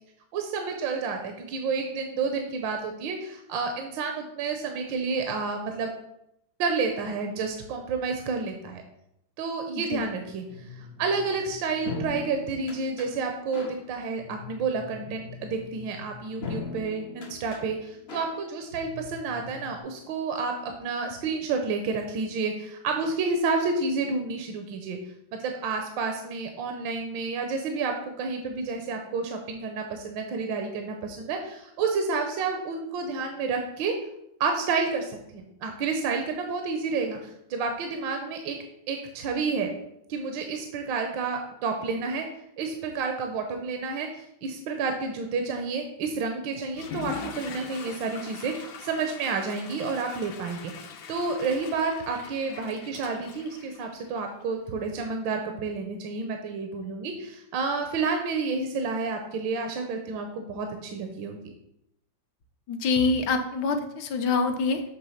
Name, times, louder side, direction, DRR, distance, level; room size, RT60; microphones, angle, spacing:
voice 1, 0.3-5.9 6.6-8.8 9.4-25.0 25.4-33.9 34.4-38.6 38.9-39.7 40.1-42.2 42.6-61.4, right 4 dB, 75° right, 5 dB, 1.4 m, -30 dB
sound 1, 10.5-19.8, left 4 dB, 45° left, 0.9 m, -41 dB
Water / Toilet flush, 46.7-54.4, left 7 dB, 85° left, 1.5 m, -42 dB
voice 2, 62.7-64.8, left 4 dB, 70° left, 6 dB, 1.3 m, -25 dB
7.1 x 3.4 x 5.5 m, 0.80 s
omnidirectional pair, 2.1 m